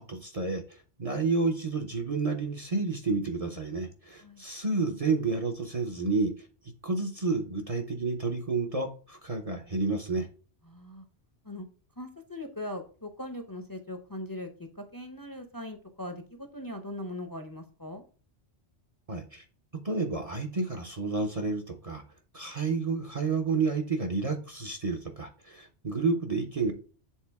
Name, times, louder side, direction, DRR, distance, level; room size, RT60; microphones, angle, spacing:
voice 1, 0.0-6.5 6.8-10.3 19.1-19.4 19.8-22.0 22.3-26.7, right 3 dB, 35° right, 4 dB, 0.7 m, -30 dB
voice 2, 10.7-11.0 11.4-11.7 12.0-18.0, left 1 dB, 20° left, 6 dB, 0.7 m, -40 dB
7.4 x 3.8 x 3.5 m, 0.39 s
omnidirectional pair, 1.2 m